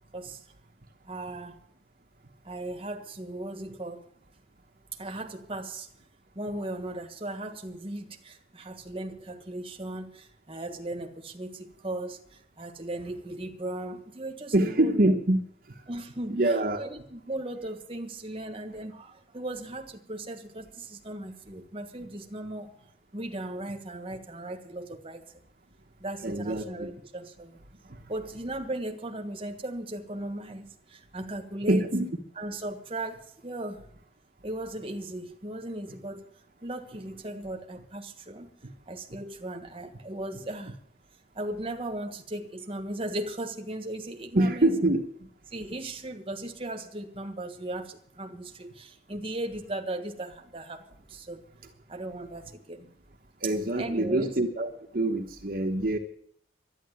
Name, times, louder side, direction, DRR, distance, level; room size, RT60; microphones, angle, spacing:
voice 1, 0.1-0.5 1.1-1.6 2.4-4.1 5.0-5.9 6.3-15.0 15.9-22.7 23.1-25.4 26.0-27.6 28.1-31.8 32.4-33.8 34.4-36.3 36.6-38.5 38.9-40.8 41.3-44.7 45.5-51.4 51.9-52.9 53.8-54.3, right 1 dB, 30° right, 5 dB, 1.4 m, -37 dB
voice 2, 14.5-15.4 16.3-16.8 26.2-26.9 31.7-32.1 44.3-45.0 53.4-56.0, right 1 dB, 50° right, 4 dB, 1.1 m, -25 dB
11.5 x 10.0 x 9.4 m, 0.64 s
head